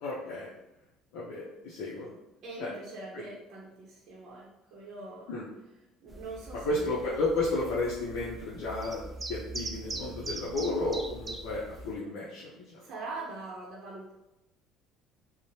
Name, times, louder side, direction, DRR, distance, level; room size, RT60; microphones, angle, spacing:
voice 1, 0.0-0.5 1.1-2.1 2.6-2.7 3.1-3.2 5.3-5.5 6.6-12.8, left 2 dB, 85° left, -6 dB, 0.5 m, -33 dB
voice 2, 2.4-5.3 6.0-7.0 12.8-14.1, right 3 dB, 60° right, -4 dB, 0.6 m, -43 dB
sound 1, 6.1-12.0, right 2 dB, 20° right, 0.3 m, -42 dB
3.0 x 2.0 x 2.7 m, 0.95 s
cardioid pair, 115°, 0 cm